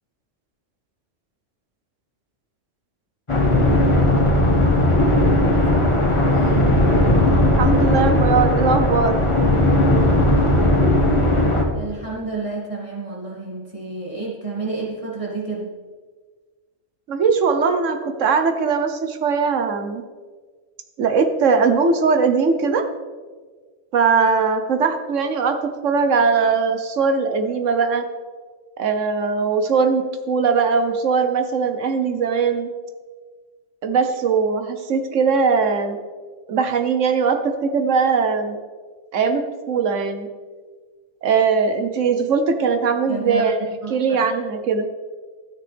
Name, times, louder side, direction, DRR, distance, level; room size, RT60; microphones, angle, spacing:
sound 1, 3.3-11.6, left 1 dB, 25° left, 1.5 m, -17 dB
voice 1, 5.5-6.8 11.7-15.8 43.1-44.3, right 3 dB, 25° right, -5 dB, 2.7 m, -31 dB
voice 2, 7.6-9.1 17.1-20.0 21.0-22.8 23.9-25.6 25.8-28.1 28.8-32.7 33.8-36.0 36.5-38.6 39.1-39.4 39.7-40.3 41.2-43.6 43.9-44.9, right 5 dB, 85° right, 6 dB, 1.3 m, -20 dB
13.0 x 9.8 x 3.5 m, 1.5 s
omnidirectional pair, 1.3 m